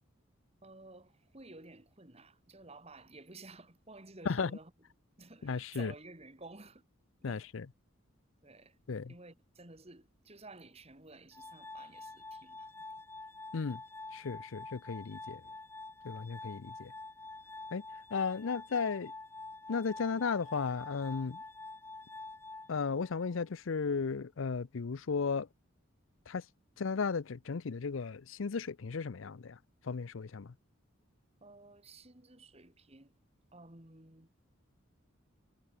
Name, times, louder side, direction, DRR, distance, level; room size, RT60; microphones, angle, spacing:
voice 1, 0.6-4.7 5.2-6.8 7.3-7.5 8.4-8.8 9.1-12.8 31.4-33.1 33.5-34.3, right 2 dB, 30° right, 2.6 m, -53 dB
voice 2, 5.4-5.9 7.2-7.6 8.9-9.1 13.5-13.8 14.1-15.4 16.0-16.9 17.7-17.8 18.1-19.1 19.7-21.4 22.7-25.5 26.3-26.4 26.8-29.6 29.8-30.5, left 5 dB, 70° left, 0.6 m, -35 dB
Glass, 11.3-23.3, left 3 dB, 10° left, 0.6 m, -47 dB
head